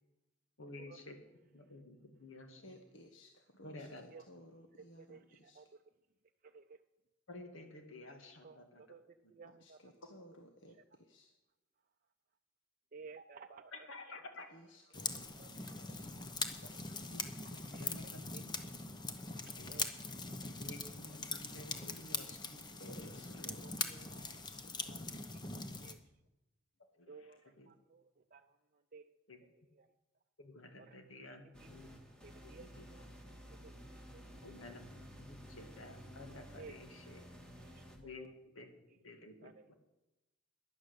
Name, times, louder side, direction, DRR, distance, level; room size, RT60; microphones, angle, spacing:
voice 1, 0.6-1.2 1.5-2.8 3.6-4.0 7.3-9.0 9.2-9.3 13.7-14.5 15.7-16.0 17.1-18.5 19.6-19.8 20.6-24.1 26.9-27.7 29.3-29.4 30.4-32.0 32.4-32.9 34.4-37.2 37.9-38.7 39.0-39.7, left 2 dB, 85° left, 5 dB, 2.3 m, -53 dB
voice 2, 2.6-5.6 9.4-11.3 14.5-16.0 22.8-25.1, equal, 65° left, 4 dB, 1.3 m, -58 dB
voice 3, 5.0-5.6 6.5-6.6 8.4-8.6 8.9-9.0 9.3-9.8 12.9-13.7 15.4-15.8 17.7-17.9 19.7-19.9 20.4-20.5 23.5-23.8 24.1-24.3 24.9-25.0 25.8-26.0 27.1-27.4 27.7-28.0 28.3-28.5 28.9-29.1 29.8-29.9 32.5-33.0 33.6-33.7 34.1-34.2 36.6-36.7 37.8-38.3 39.4-39.5, right 5 dB, 45° right, 5 dB, 0.5 m, -55 dB
sound 1, 14.9-25.9, left 4 dB, 20° left, 1.0 m, -42 dB
sound 2, 31.5-38.0, equal, 5° left, 2.0 m, -53 dB
12.0 x 11.0 x 8.2 m, 1.0 s
head